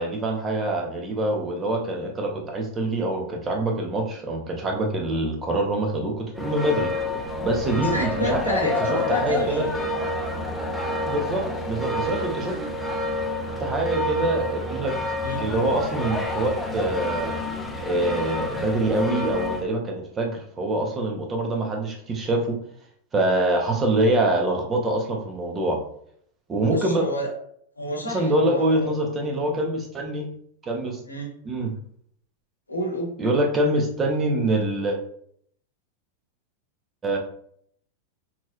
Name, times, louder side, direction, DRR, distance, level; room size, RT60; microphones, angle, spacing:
voice 1, 0.0-6.9 7.4-8.6 9.1-9.7 11.1-12.6 13.6-15.0 15.4-17.4 17.8-22.6 23.1-25.8 26.5-27.0 28.1-30.3 30.6-31.0 31.4-31.7 33.2-35.0 37.0-37.2, right 1 dB, 20° right, 2 dB, 0.9 m, -25 dB
sound 1, 6.3-19.6, left 1 dB, 5° left, 0.6 m, -28 dB
voice 2, 7.7-10.1 15.2-15.4 26.6-27.3 27.8-28.9 31.1-31.3 32.7-33.1, equal, 80° left, 0 dB, 1.1 m, -30 dB
5.7 x 3.0 x 2.5 m, 0.66 s
figure-of-eight pair, 90°, 0 cm